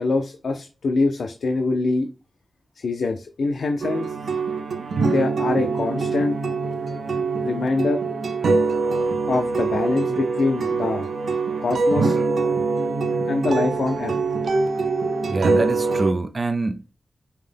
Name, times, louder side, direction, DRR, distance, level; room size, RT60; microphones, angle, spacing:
voice 1, 0.0-2.1 2.8-4.2 5.0-6.4 7.4-8.0 9.3-11.1 11.6-12.2 13.3-14.1, left 3 dB, 80° left, 0.4 m, -24 dB
sound 1, 3.8-16.1, right 4 dB, 90° right, 0.5 m, -24 dB
voice 2, 15.3-16.9, right 3 dB, 35° right, 0.4 m, -25 dB
5.4 x 2.1 x 3.3 m
wide cardioid pair, 145°, 0 cm